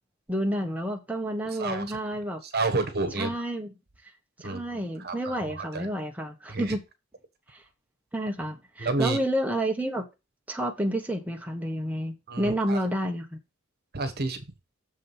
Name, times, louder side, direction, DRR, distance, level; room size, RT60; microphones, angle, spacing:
voice 1, 0.3-2.4 3.2-3.7 4.4-6.8 7.5-7.6 8.1-10.1 10.5-13.4, right 1 dB, 10° right, 1.2 m, -30 dB
voice 2, 2.5-3.3 4.4-4.6 5.0-5.9 6.5-6.7 8.8-9.2 12.3-12.8 13.9-14.4, right 3 dB, 55° right, 1.5 m, -29 dB
7.1 x 5.0 x 5.5 m
head